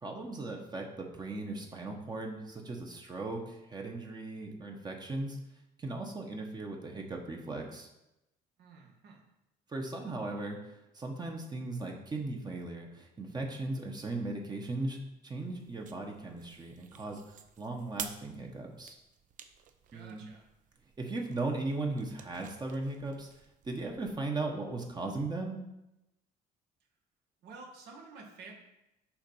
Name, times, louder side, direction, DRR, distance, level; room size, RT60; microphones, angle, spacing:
voice 1, 0.0-5.4 5.8-7.9 9.7-15.0 15.2-17.2 17.6-18.9 19.9-20.2 21.0-23.3 23.6-25.6, right 2 dB, 25° right, 1 dB, 0.9 m, -37 dB
voice 2, 8.6-9.2 19.9-20.5 27.4-28.5, right 4 dB, 80° right, 0 dB, 1.5 m, -51 dB
sound 1, 15.3-24.2, right 8 dB, 50° right, 0.5 m, -50 dB
7.0 x 2.6 x 5.4 m, 0.90 s
cardioid pair, 110°, 17 cm